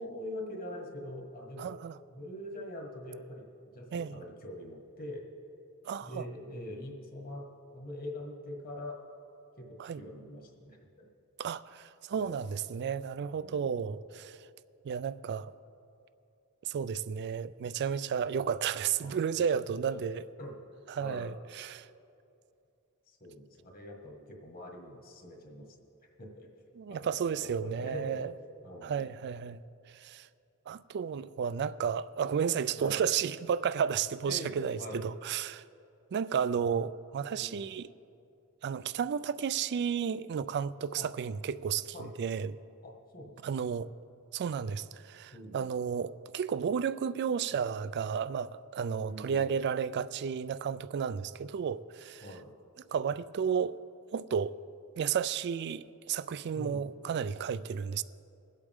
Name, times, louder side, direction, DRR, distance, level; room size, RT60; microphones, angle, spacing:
voice 1, 0.0-1.7 2.1-5.3 6.0-7.5 7.7-9.0 9.6-11.1 12.1-12.5 13.3-13.9 19.0-19.4 19.7-20.1 20.4-20.6 21.0-21.4 23.1-25.7 26.2-26.5 26.9-28.2 28.6-29.1 32.8-33.1 34.2-35.0 37.4-37.6 40.9-41.1 41.9-42.1 42.8-43.6 45.3-45.8 49.0-49.5 52.2-52.5 56.5-56.8, left 1 dB, 40° left, 1.7 m, -44 dB
voice 2, 1.6-1.9 3.9-4.2 5.8-6.3 9.8-10.0 11.4-14.4 14.8-15.5 16.6-20.2 20.9-21.9 26.8-28.3 28.8-29.6 29.9-30.3 30.7-35.6 36.1-37.9 38.6-42.5 43.4-43.9 44.3-52.2 52.9-53.8 54.1-54.6 55.0-58.0, right 7 dB, 50° right, 0.3 m, -32 dB
22.0 x 8.2 x 3.6 m
head